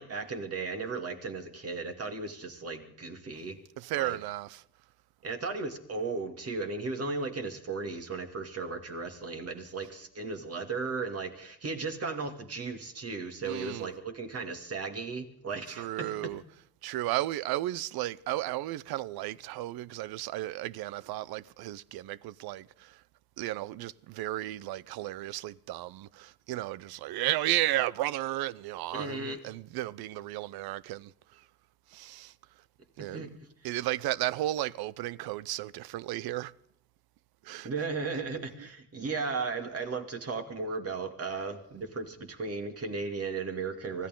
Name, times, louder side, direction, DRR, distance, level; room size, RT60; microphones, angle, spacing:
voice 1, 0.0-3.6 3.9-4.2 5.2-16.3 28.9-29.4 33.0-33.3 37.6-44.1, right 4 dB, 40° right, 2.5 m, -36 dB
voice 2, 3.8-4.6 13.4-13.9 15.7-16.4 16.8-23.0 23.4-31.5 31.9-32.3 33.0-33.3 33.6-36.5 37.4-37.7 38.4-38.7, right 15 dB, 85° right, 0.6 m, -34 dB
24.5 x 15.0 x 3.8 m
cardioid pair, 105°, 36 cm